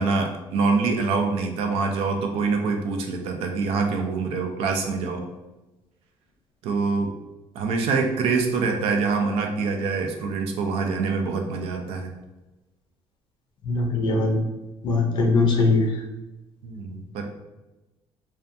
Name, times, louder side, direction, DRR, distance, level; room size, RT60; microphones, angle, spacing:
voice 1, 0.0-5.2 6.6-7.1 7.5-12.1 16.6-17.3, right 4 dB, 75° right, 4 dB, 0.4 m, -25 dB
voice 2, 13.7-14.4 14.8-15.9, left 3 dB, 50° left, 1 dB, 0.5 m, -21 dB
2.6 x 2.2 x 2.5 m, 1.1 s
cardioid pair, 170°, 10 cm